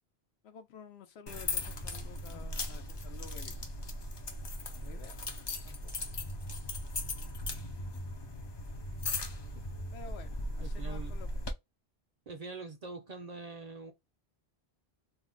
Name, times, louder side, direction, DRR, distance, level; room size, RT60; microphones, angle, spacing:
voice 1, 0.4-3.5 4.7-5.2 5.6-5.9 9.9-11.5, left 7 dB, 85° left, 0.8 m, -51 dB
sound 1, 1.3-11.5, left 2 dB, 45° left, 0.3 m, -38 dB
voice 2, 10.6-11.1 12.3-13.9, right 3 dB, 55° right, 0.5 m, -44 dB
2.5 x 2.0 x 3.6 m
omnidirectional pair, 1.1 m